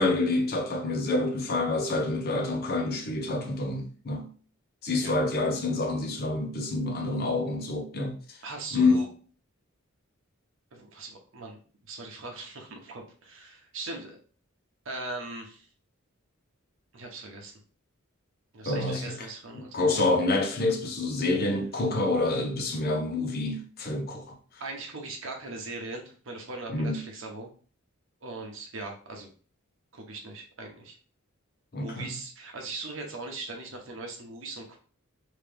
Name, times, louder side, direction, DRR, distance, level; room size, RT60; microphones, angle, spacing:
voice 1, 0.0-4.3 4.8-8.2 8.7-9.1 18.6-19.2 19.7-24.3 26.7-27.0 31.7-32.2, left 2 dB, 50° left, 0.8 m, -27 dB
voice 2, 8.4-9.1 10.7-11.6 11.9-14.2 14.8-15.7 16.9-17.6 18.5-19.8 24.6-27.5 28.2-29.3 29.9-31.0 31.8-34.8, right 3 dB, 70° right, 1.0 m, -40 dB
3.2 x 2.8 x 3.5 m
head